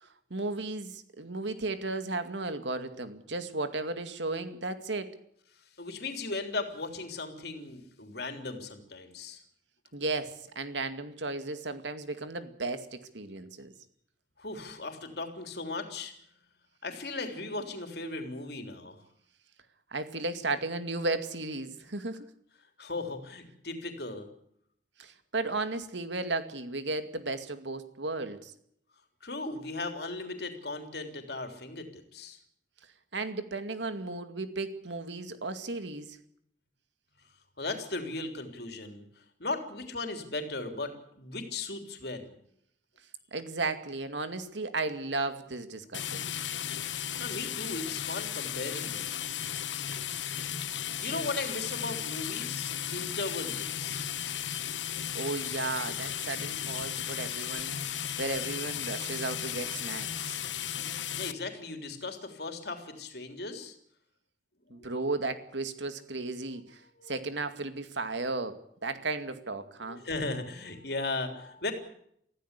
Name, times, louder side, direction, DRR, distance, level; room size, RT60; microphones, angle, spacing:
voice 1, 0.0-5.1 9.9-13.7 19.9-22.3 25.0-28.5 33.1-36.2 43.3-46.3 51.0-51.3 55.1-60.4 64.7-66.8 67.1-70.0, right 3 dB, 80° right, 9 dB, 2.3 m, -35 dB
voice 2, 5.6-9.4 14.4-16.1 16.8-19.0 22.8-24.3 29.2-32.4 37.6-39.0 39.4-42.4 47.2-49.2 51.0-54.1 61.2-63.7 64.7-64.9 67.0-67.3 69.9-71.7, left 3 dB, 60° left, 5 dB, 3.5 m, -37 dB
sound 1, 45.9-61.3, left 9 dB, 85° left, 1.3 m, -35 dB
24.0 x 15.5 x 8.3 m, 0.70 s
head